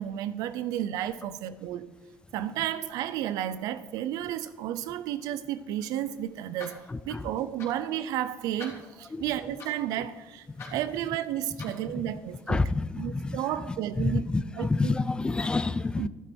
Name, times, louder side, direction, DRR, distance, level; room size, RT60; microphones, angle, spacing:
voice 1, 0.0-1.9 2.3-10.5 10.7-12.6 13.0-14.3 14.6-14.9 16.0-16.1, right 11 dB, 85° right, 0.7 m, -32 dB
sound 1, 5.8-12.5, left 4 dB, 45° left, 3.7 m, -50 dB
voice 2, 6.9-7.3 9.1-9.2 10.6-10.8 11.9-12.1 12.5-16.1, left 3 dB, 15° left, 0.4 m, -29 dB
12.0 x 12.0 x 4.6 m
cardioid pair, 130°, 6 cm